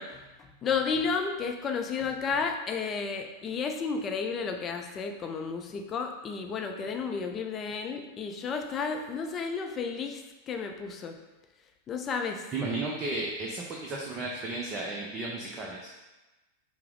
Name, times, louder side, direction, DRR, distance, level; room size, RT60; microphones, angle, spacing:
voice 1, 0.0-11.2 11.9-12.5, left 5 dB, 25° left, 4 dB, 0.4 m, -32 dB
voice 2, 12.5-15.9, right 2 dB, 25° right, -2 dB, 0.5 m, -34 dB
5.5 x 2.0 x 3.8 m, 1.1 s
figure-of-eight pair, 90°, 0 cm